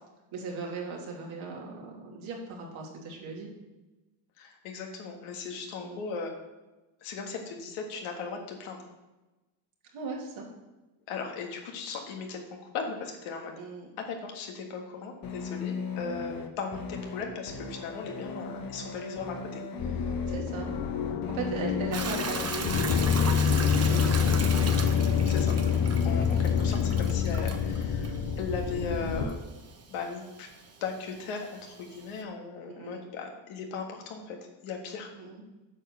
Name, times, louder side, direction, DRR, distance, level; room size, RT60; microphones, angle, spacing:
voice 1, 0.3-3.5 5.8-6.0 9.9-10.5 13.6-13.9 20.3-20.7 21.3-24.1 26.3-26.4 32.7-33.0 35.1-35.4, right 4 dB, 75° right, -2 dB, 2.7 m, -38 dB
voice 2, 4.4-6.3 7.0-8.8 11.1-12.4 12.7-13.5 14.1-20.2 25.2-25.5 26.0-29.4 29.9-30.5 30.8-34.4 34.6-35.1, left 5 dB, 85° left, 2 dB, 1.8 m, -37 dB
sound 1, 15.2-27.2, left 4 dB, 45° left, 1.1 m, -37 dB
sound 2, 19.8-29.2, left 7 dB, 70° left, 0.9 m, -27 dB
Hiss / Toilet flush / Trickle dribble, 21.9-32.2, right 5 dB, 30° right, 1.1 m, -38 dB
8.6 x 4.9 x 6.8 m, 1.1 s
cardioid pair, 85°, 49 cm